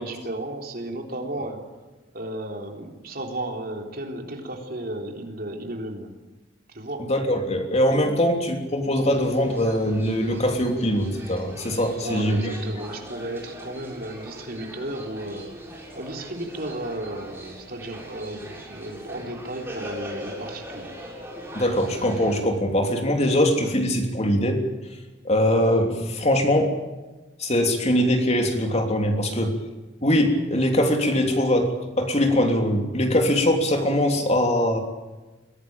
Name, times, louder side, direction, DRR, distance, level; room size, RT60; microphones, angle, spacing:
voice 1, 0.0-1.6 2.1-6.1 6.7-7.1 11.9-15.6 15.9-21.0, right 1 dB, 55° right, 2 dB, 3.7 m, -34 dB
voice 2, 7.1-12.4 21.5-24.6 25.2-26.7 27.4-29.5 30.0-34.8, left 1 dB, 35° left, 3 dB, 3.2 m, -22 dB
sound 1, 9.0-22.4, equal, 15° right, 6.5 m, -40 dB
22.5 x 18.0 x 8.9 m, 1.2 s
head